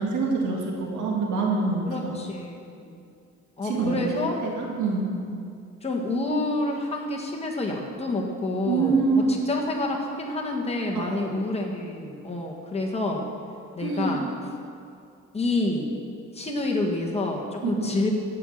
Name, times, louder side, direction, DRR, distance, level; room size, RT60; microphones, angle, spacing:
voice 1, 0.0-2.2 3.6-5.1 8.7-9.3 10.9-11.3 13.8-14.2 17.6-18.0, right 4 dB, 75° right, -1 dB, 2.3 m, -26 dB
voice 2, 1.8-3.0 3.6-4.4 5.8-13.2 13.7-14.3 15.3-15.9 16.3-18.1, left 2 dB, 20° left, -1 dB, 1.7 m, -28 dB
15.5 x 5.8 x 6.5 m, 2.4 s
cardioid pair, 90°, 30 cm